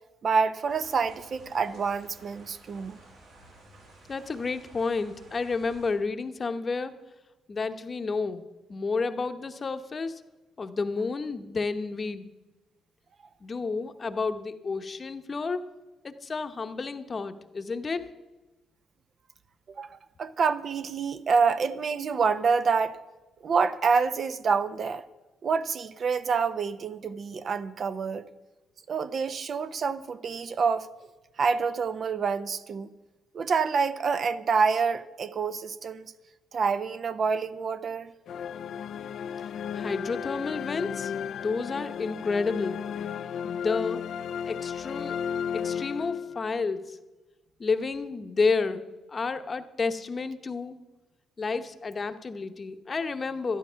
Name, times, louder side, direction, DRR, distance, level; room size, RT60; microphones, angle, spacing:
voice 1, 0.2-3.0 19.7-23.0 23.4-25.0 25.4-28.2 28.9-30.9 31.4-32.9 33.3-36.1 36.5-38.1, right 5 dB, 50° right, 0.7 m, -27 dB
sound 1, 0.7-5.9, right 2 dB, 75° right, 4.9 m, -53 dB
voice 2, 4.1-6.9 7.5-8.4 8.7-10.2 10.6-12.3 13.4-15.7 16.0-18.1 39.7-41.1 41.4-42.8 43.4-44.0 44.5-45.2 45.5-47.0 47.6-50.8 51.4-53.6, left 4 dB, 35° left, 0.9 m, -30 dB
sound 2, 38.3-46.6, left 8 dB, 65° left, 0.4 m, -34 dB
12.5 x 11.5 x 5.7 m
cardioid pair, 90°, 0 cm